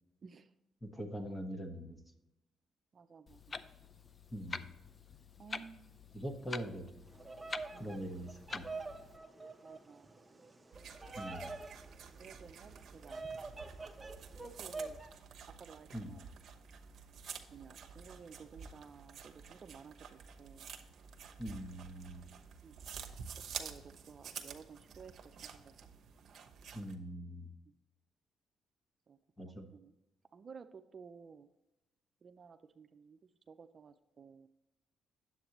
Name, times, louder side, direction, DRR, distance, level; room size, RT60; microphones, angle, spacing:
voice 1, 0.8-2.0 4.3-4.7 6.1-6.9 7.8-8.8 11.1-11.5 15.9-16.2 21.4-22.2 26.7-27.5 29.4-29.7, equal, 10° left, 4 dB, 1.3 m, -43 dB
voice 2, 2.9-3.4 5.4-6.0 7.7-8.0 9.6-10.1 12.2-13.2 14.4-15.0 15.6-16.3 17.5-20.0 20.4-20.7 22.6-22.7 23.6-25.1 25.4-25.9 29.1-29.2 29.5-29.9 30.3-31.5 32.2-33.2 33.5-34.5, right 6 dB, 45° right, 8 dB, 0.4 m, -54 dB
Clock, 3.3-9.2, left 4 dB, 35° left, 0.5 m, -47 dB
Bird vocalization bird call bird song, 7.1-15.1, right 3 dB, 20° right, 0.7 m, -46 dB
sound 1, 10.7-26.9, right 6 dB, 60° right, 0.9 m, -50 dB
9.2 x 7.8 x 3.0 m, 0.95 s
cardioid pair, 90°, 0 cm